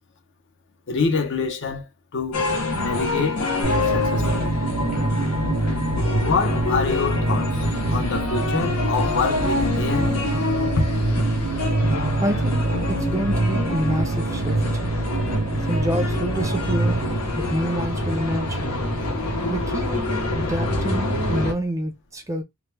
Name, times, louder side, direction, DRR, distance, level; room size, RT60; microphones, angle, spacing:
voice 1, 0.9-2.4 2.8-4.5 6.2-10.2 10.8-10.9, left 4 dB, 55° left, 0.6 m, -26 dB
sound 1, 2.3-21.5, left 2 dB, 90° left, 0.8 m, -26 dB
sound 2, 3.6-17.2, right 2 dB, 80° right, 0.6 m, -25 dB
voice 2, 12.2-14.6 15.7-17.0 17.4-18.6 19.5-22.4, equal, 15° right, 0.4 m, -27 dB
2.2 x 2.1 x 3.1 m
head